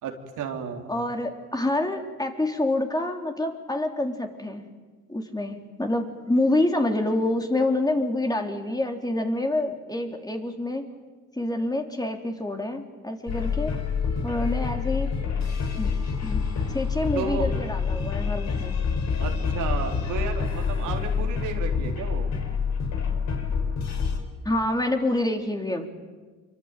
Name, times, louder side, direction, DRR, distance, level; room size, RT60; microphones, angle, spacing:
voice 1, 0.0-0.9 14.4-14.5 17.1-17.5 19.2-22.3, right 6 dB, 85° right, 2 dB, 3.9 m, -33 dB
voice 2, 0.9-4.6 5.1-10.9 11.4-13.7 14.2-15.1 15.8-15.9 16.2-16.4 16.7-18.8 24.5-25.9, left 1 dB, 15° left, 3 dB, 3.8 m, -27 dB
sound 1, 13.3-24.2, left 5 dB, 65° left, 4.9 m, -27 dB
26.5 x 24.0 x 9.3 m, 1.4 s
cardioid pair, 90°, 30 cm